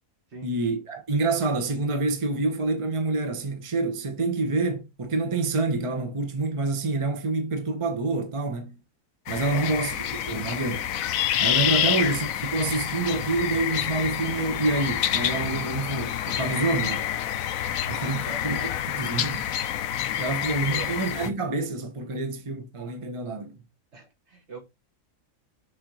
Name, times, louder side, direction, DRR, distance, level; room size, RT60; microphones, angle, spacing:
voice 1, 0.4-8.8 9.3-10.9 11.4-17.1 17.9-19.5 20.2-23.5, right 3 dB, 25° right, 0.9 m, -27 dB
sound 1, 9.3-21.3, left 11 dB, 85° left, 1.1 m, -28 dB
voice 2, 9.5-9.8 11.8-12.1 18.0-18.6 20.1-20.9 23.9-24.6, right 2 dB, 55° right, 2.3 m, -42 dB
6.8 x 3.8 x 4.7 m
omnidirectional pair, 1.4 m